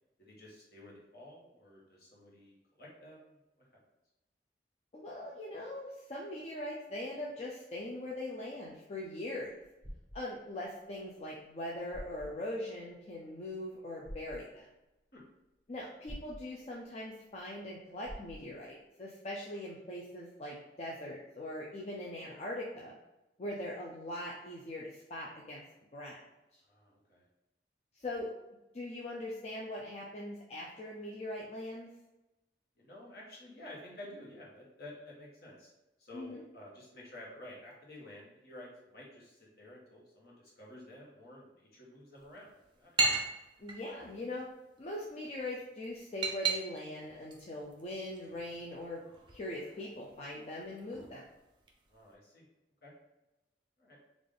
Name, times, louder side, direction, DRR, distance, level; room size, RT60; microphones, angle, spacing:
voice 1, 0.2-3.7 15.1-15.2 26.7-27.2 32.8-35.7 36.0-42.5 42.8-42.9 51.9-52.4 52.8-52.9 53.8-54.0, left 1 dB, 60° left, -4 dB, 1.1 m, -51 dB
voice 2, 4.9-9.6 10.1-14.7 15.7-22.9 23.4-25.6 25.9-26.2 26.5-26.6 27.9-28.3 28.7-31.9 36.1-36.4 43.6-44.5 44.8-49.0 49.3-51.2, left 1 dB, 35° left, -3 dB, 0.4 m, -41 dB
sound 1, 9.6-10.2 11.5-11.6 11.9-12.3 14.0-14.4 16.1-16.4 18.0-18.4, equal, 5° left, 1.3 m, -45 dB
sound 2, 42.1-52.1, right 4 dB, 30° right, 0.5 m, -39 dB
3.4 x 2.4 x 3.7 m, 0.97 s
head